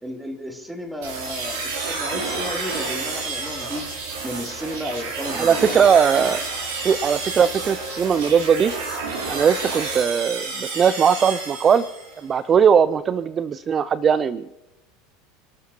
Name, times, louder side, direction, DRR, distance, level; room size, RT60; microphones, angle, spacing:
voice 1, 0.0-3.9 4.2-5.8, equal, 10° right, 2 dB, 3.0 m, -33 dB
sound 1, 1.0-12.2, right 3 dB, 75° right, 7.5 m, -30 dB
voice 2, 5.3-6.4 6.8-8.7 9.3-11.8 12.2-14.5, right 7 dB, 35° right, 16 dB, 0.5 m, -19 dB
29.5 x 13.0 x 2.9 m, 0.97 s
hypercardioid pair, 85°, 0 cm